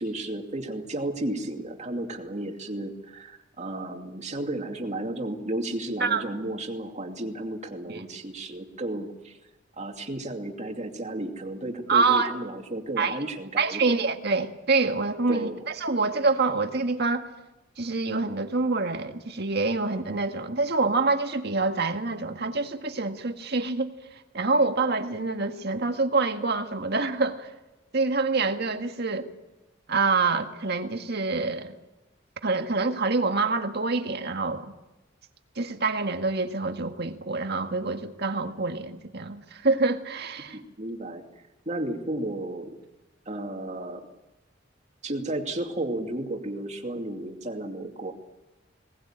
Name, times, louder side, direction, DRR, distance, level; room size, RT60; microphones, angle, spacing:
voice 1, 0.0-9.4 9.8-14.0 15.3-15.6 40.5-42.8 43.3-44.1 45.0-48.1, right 1 dB, 35° right, 2.6 m, -33 dB
voice 2, 11.9-12.3 13.0-13.2 13.6-15.5 15.7-17.3 17.8-23.9 24.3-27.5 27.9-29.3 29.9-31.7 32.4-34.7 35.6-40.6, right 3 dB, 60° right, 1.9 m, -26 dB
21.5 x 19.0 x 8.9 m
head